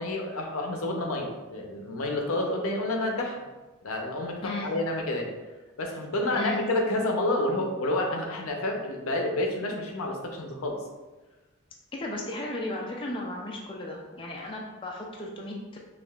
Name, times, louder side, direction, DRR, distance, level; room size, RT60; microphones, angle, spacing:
voice 1, 0.0-3.4 3.8-5.3 5.8-10.8, left 1 dB, 70° left, 2 dB, 0.6 m, -29 dB
voice 2, 4.4-4.7 6.3-6.6 11.9-15.8, left 2 dB, 25° left, -2 dB, 0.4 m, -35 dB
5.3 x 2.4 x 2.3 m, 1.2 s
head